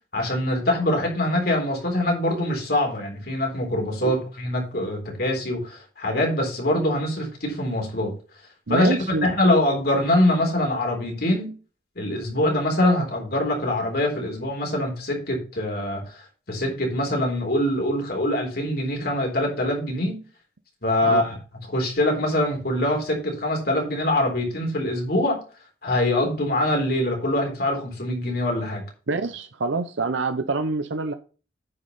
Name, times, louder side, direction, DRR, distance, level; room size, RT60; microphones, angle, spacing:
voice 1, 0.1-8.1 8.7-9.0 9.2-11.5 12.0-20.2 20.8-21.3 21.7-25.4 25.8-28.8, left 1 dB, 55° left, 1 dB, 3.8 m, -24 dB
voice 2, 8.7-9.3 21.0-21.2 29.1-31.1, right 3 dB, 85° right, 9 dB, 0.7 m, -26 dB
9.6 x 5.2 x 5.5 m, 0.36 s
head